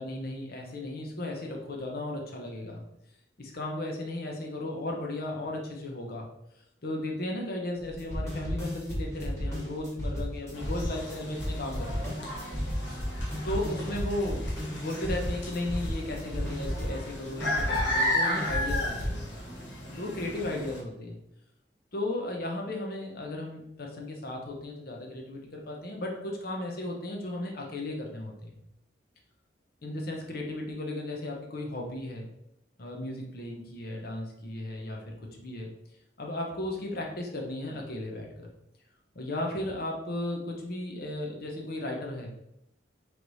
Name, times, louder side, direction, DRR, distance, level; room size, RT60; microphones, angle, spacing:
voice 1, 0.0-2.8 3.4-6.3 6.8-12.1 13.4-19.4 20.0-21.2 21.9-28.5 29.8-32.3 32.8-35.7 36.2-38.5 39.1-42.3, left 1 dB, 55° left, 0 dB, 0.8 m, -35 dB
sound 1, 7.8-18.0 18.3-19.2, equal, 15° left, 1.3 m, -33 dB
sound 2, 10.5-20.8, left 1 dB, 80° left, 1.0 m, -34 dB
3.2 x 3.1 x 4.0 m, 0.81 s
head